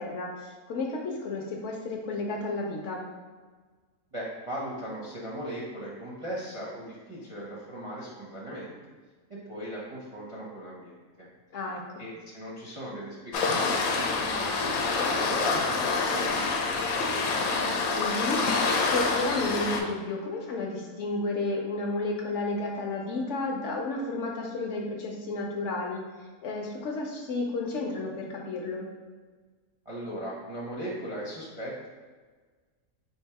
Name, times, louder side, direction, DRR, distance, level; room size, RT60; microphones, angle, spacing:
voice 1, 0.0-3.0 11.5-12.0 18.0-26.0 26.4-28.9, left 2 dB, 65° left, 0 dB, 0.8 m, -32 dB
voice 2, 4.1-8.7 9.3-11.3 12.0-14.7 15.1-17.2 29.9-31.9, equal, 40° right, -6 dB, 0.4 m, -38 dB
Waves surf, 13.3-19.8, left 4 dB, 90° left, 1.0 m, -27 dB
3.3 x 2.7 x 4.6 m, 1.4 s
omnidirectional pair, 1.5 m